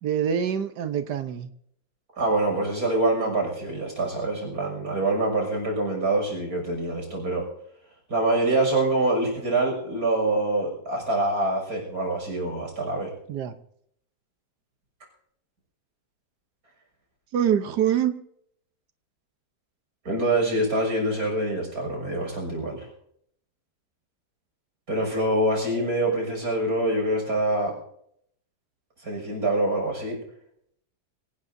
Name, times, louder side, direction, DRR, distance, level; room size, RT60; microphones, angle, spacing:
voice 1, 0.0-1.5 13.3-13.5 17.3-18.1, right 9 dB, 85° right, 8 dB, 1.6 m, -25 dB
voice 2, 2.2-7.4 8.1-13.1 20.1-22.9 24.9-27.7 29.0-30.2, right 2 dB, 65° right, 1 dB, 7.0 m, -25 dB
25.5 x 18.0 x 2.7 m, 0.70 s
omnidirectional pair, 1.7 m